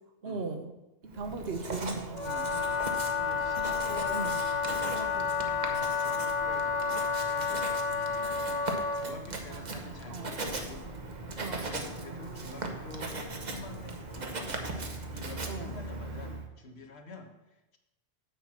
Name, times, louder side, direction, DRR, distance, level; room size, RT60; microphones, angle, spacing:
voice 1, 0.2-0.7 1.0-2.5 4.1-4.4 9.5-10.3 11.4-11.7 15.4-15.8, right 4 dB, 65° right, 6 dB, 1.2 m, -38 dB
Writing, 1.1-16.5, right 2 dB, 45° right, 1.1 m, -39 dB
Wind instrument woodwind instrument, 2.1-9.2, left 5 dB, 50° left, 0.6 m, -30 dB
voice 2, 2.9-4.3 4.8-10.9 11.6-17.8, left 3 dB, 70° left, 4 dB, 1.4 m, -48 dB
7.1 x 5.8 x 7.4 m, 0.97 s
omnidirectional pair, 1.1 m